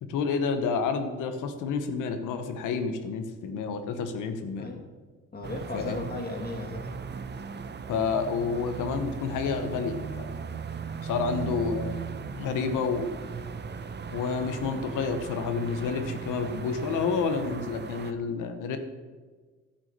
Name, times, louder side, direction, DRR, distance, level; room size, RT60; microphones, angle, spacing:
voice 1, 0.0-4.7 5.7-6.0 7.9-10.3 11.0-12.0 12.3-13.1 14.1-18.8, left 5 dB, 90° left, 8 dB, 1.2 m, -29 dB
voice 2, 5.3-6.9, left 2 dB, 30° left, 1 dB, 2.6 m, -36 dB
sound 1, 5.4-18.1, right 6 dB, 35° right, 0.8 m, -38 dB
11.5 x 6.2 x 6.8 m, 1.4 s
cardioid pair, 90°, 30 cm